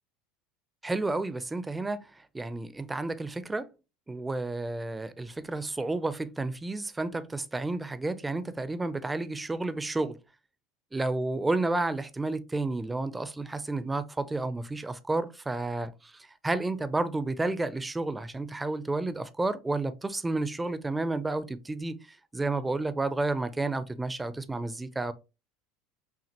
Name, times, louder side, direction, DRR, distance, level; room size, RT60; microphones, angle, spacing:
voice 1, 0.8-2.1 2.3-3.7 4.1-10.1 10.9-22.0 22.3-25.1, right 2 dB, 10° right, 0.4 m, -31 dB
5.8 x 2.4 x 2.8 m
supercardioid pair, 100°, 0 cm